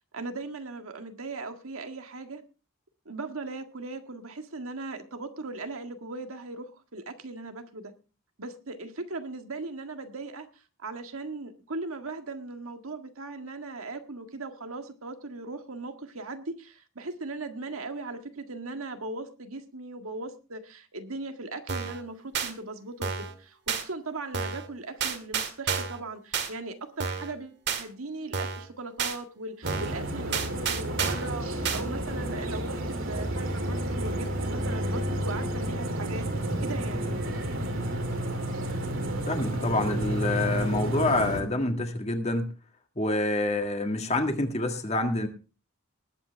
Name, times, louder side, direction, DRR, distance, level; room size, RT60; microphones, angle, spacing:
voice 1, 0.1-2.4 3.1-7.9 8.4-10.5 10.8-37.1, right 3 dB, 85° right, 6 dB, 1.7 m, -39 dB
sound 1, 21.7-22.0 22.3-22.5 23.0-23.3 23.7-23.8 24.3-24.7 25.0-26.0 26.3-26.5 27.0-27.3 27.7-27.8 28.3-28.7 29.0-29.2 29.7-30.0 30.3-31.3 31.6-31.8, right 6 dB, 55° right, 1.9 m, -30 dB
sound 2, 29.6-41.4, right 1 dB, 70° right, 2.8 m, -31 dB
voice 2, 39.3-42.5 43.0-45.3, left 2 dB, 30° left, 5 dB, 1.8 m, -27 dB
20.0 x 8.8 x 3.4 m, 0.34 s
head